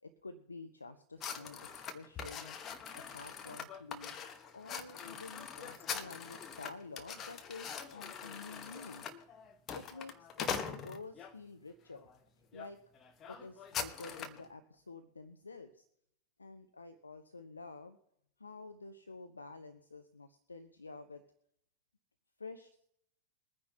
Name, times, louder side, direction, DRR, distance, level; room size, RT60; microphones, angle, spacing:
voice 1, 0.0-2.6 2.9-4.2 4.5-9.1 9.7-12.1 12.5-12.8 13.3-15.8 16.4-18.0 18.4-21.2 22.4-22.8, left 3 dB, 80° left, 8 dB, 0.7 m, -50 dB
sound 1, 1.2-11.3 11.9-12.2 12.5-12.7 12.9-14.4, left 7 dB, 30° left, 1.2 m, -43 dB
22.5 x 9.7 x 2.8 m, 0.75 s
figure-of-eight pair, 90°, 0 cm